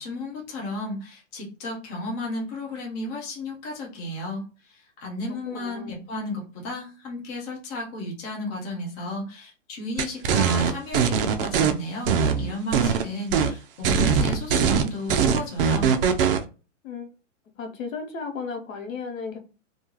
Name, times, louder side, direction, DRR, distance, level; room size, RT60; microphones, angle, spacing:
voice 1, 0.0-15.9, left 1 dB, 15° left, 0.3 m, -33 dB
voice 2, 5.5-6.0 16.8-17.1 17.6-19.4, left 5 dB, 80° left, 0.9 m, -34 dB
sound 1, 10.0-11.7 12.1-13.0 13.3-13.5 13.8-16.4, right 6 dB, 45° right, 0.4 m, -21 dB
2.3 x 2.2 x 2.9 m
hypercardioid pair, 130°, 39 cm